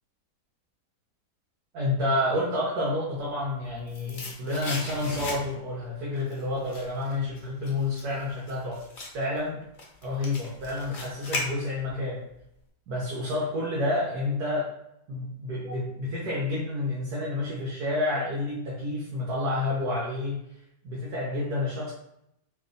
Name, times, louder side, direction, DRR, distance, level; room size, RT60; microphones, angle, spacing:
voice 1, 1.7-8.8 9.1-9.6 10.0-12.2 12.9-14.7 15.1-20.4 20.8-21.9, left 2 dB, 70° right, -5 dB, 1.3 m, -29 dB
sound 1, 3.4-5.8 6.1-12.0 12.3-12.4, left 2 dB, 55° left, 0.5 m, -38 dB
3.2 x 2.4 x 3.8 m, 0.79 s
omnidirectional pair, 1.8 m